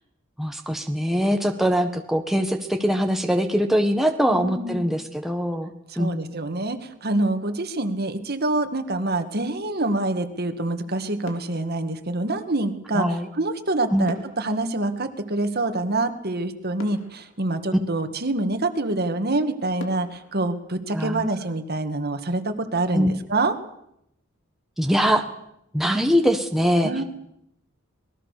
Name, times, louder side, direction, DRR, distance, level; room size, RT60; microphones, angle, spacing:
voice 1, 0.4-5.7 6.0-6.2 12.9-13.3 13.9-14.1 20.9-21.3 22.9-23.1 24.8-25.2 25.7-26.9, equal, ahead, 4 dB, 1.5 m, -22 dB
voice 2, 4.3-4.8 5.9-23.5 26.8-27.0, right 2 dB, 50° right, 8 dB, 2.1 m, -26 dB
sound 1, 11.2-12.7 14.1-16.0 16.4-16.5 16.8-18.4 18.9-19.0 19.8-21.7 22.0-22.2, left 2 dB, 75° left, 3.2 m, -45 dB
26.0 x 20.5 x 6.8 m, 0.79 s
head